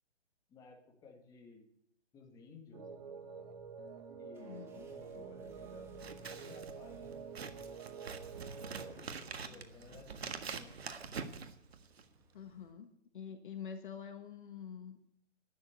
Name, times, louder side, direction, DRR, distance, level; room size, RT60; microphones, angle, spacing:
voice 1, 0.5-1.6 2.1-2.9 4.2-5.9 6.2-7.2 8.8-10.8, left 4 dB, 10° left, 1 dB, 2.2 m, -56 dB
sound 1, 2.7-8.9, right 6 dB, 35° right, 1.6 m, -48 dB
sound 2, 3.6-12.7, right 1 dB, 5° right, 1.4 m, -62 dB
voice 2, 4.4-4.9 9.5-9.6 12.3-12.9 13.1-15.1, left 7 dB, 45° left, 8 dB, 1.5 m, -47 dB
Scissors, 5.9-12.2, right 5 dB, 65° right, 1.7 m, -45 dB
12.0 x 10.5 x 8.1 m, 0.71 s
hypercardioid pair, 150°, 34 cm